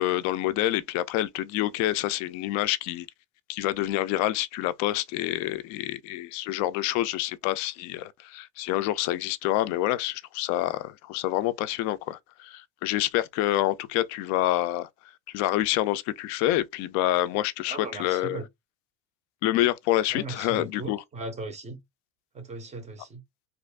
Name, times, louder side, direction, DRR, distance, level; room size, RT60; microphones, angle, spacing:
voice 1, 0.0-3.1 3.5-14.9 15.3-18.4 19.4-21.0, left 15 dB, 45° left, 0.4 m, -27 dB
voice 2, 17.7-18.5 20.1-21.8 22.3-23.2, right 3 dB, 20° right, 0.5 m, -38 dB
3.0 x 2.5 x 3.3 m
cardioid pair, 150°, 39 cm